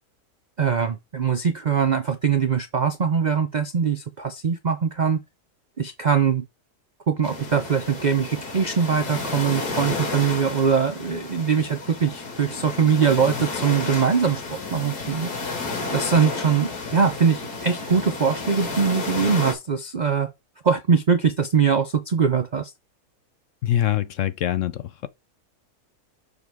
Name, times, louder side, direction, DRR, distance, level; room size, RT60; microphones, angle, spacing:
voice 1, 0.6-5.2 5.8-6.4 7.1-15.3 15.9-20.3 20.6-22.7, right 6 dB, 55° right, 0.4 m, -22 dB
sound 1, 7.2-19.5, left 3 dB, 85° left, 2.4 m, -32 dB
voice 2, 23.6-25.1, left 12 dB, 65° left, 0.8 m, -24 dB
6.7 x 6.1 x 3.5 m
omnidirectional pair, 1.6 m